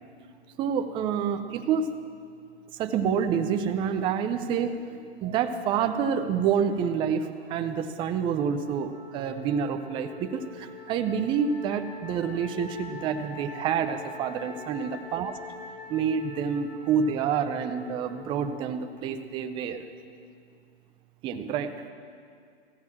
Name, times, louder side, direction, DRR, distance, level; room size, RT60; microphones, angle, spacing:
voice 1, 0.6-1.9 2.8-15.3 15.9-19.8 21.2-21.7, right 7 dB, 15° right, 7 dB, 0.5 m, -28 dB
Wind instrument woodwind instrument, 8.6-19.0, left 4 dB, 45° left, 2.5 m, -44 dB
15.0 x 9.3 x 7.2 m, 2.2 s
hypercardioid pair, 135°, 33 cm